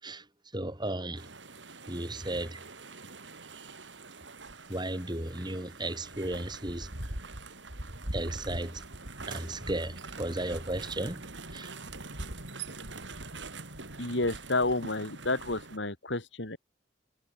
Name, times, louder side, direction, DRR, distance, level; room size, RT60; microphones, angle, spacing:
voice 1, 0.5-1.3 1.9-2.6 4.7-6.9 8.1-8.8 9.3-11.3 11.5-11.7, right 1 dB, 25° right, 4.0 m, -34 dB
sound 1, 1.2-15.8, right 2 dB, 90° right, 5.2 m, -43 dB
voice 2, 14.0-16.6, left 2 dB, 80° left, 3.6 m, -30 dB
head